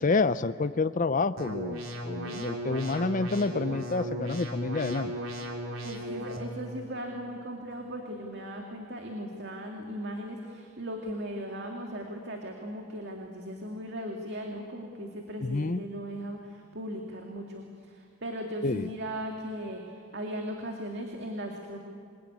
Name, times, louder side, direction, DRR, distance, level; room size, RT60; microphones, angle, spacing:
voice 1, 0.0-5.1 15.4-15.8 18.6-18.9, left 3 dB, 40° left, 13 dB, 0.6 m, -28 dB
sound 1, 1.4-6.4, right 1 dB, 80° right, 3.6 m, -36 dB
voice 2, 5.8-21.8, equal, 55° right, 2 dB, 2.2 m, -38 dB
27.0 x 21.5 x 9.7 m, 2.4 s
head